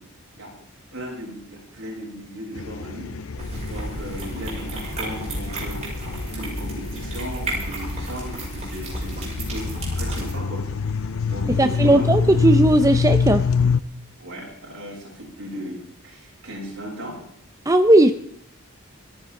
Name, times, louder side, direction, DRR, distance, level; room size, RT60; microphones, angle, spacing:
voice 1, 0.9-3.1 3.7-5.8 6.2-9.7 10.0-10.6 11.3-12.1 14.2-17.2, equal, 65° right, -4 dB, 7.4 m, -36 dB
sound 1, 2.5-13.8, left 5 dB, 80° left, 0.6 m, -26 dB
sound 2, 3.4-10.3, right 1 dB, 35° right, 6.3 m, -32 dB
voice 2, 11.6-13.5 17.7-18.1, right 1 dB, 15° right, 8 dB, 0.6 m, -16 dB
29.5 x 10.5 x 3.8 m, 0.67 s
head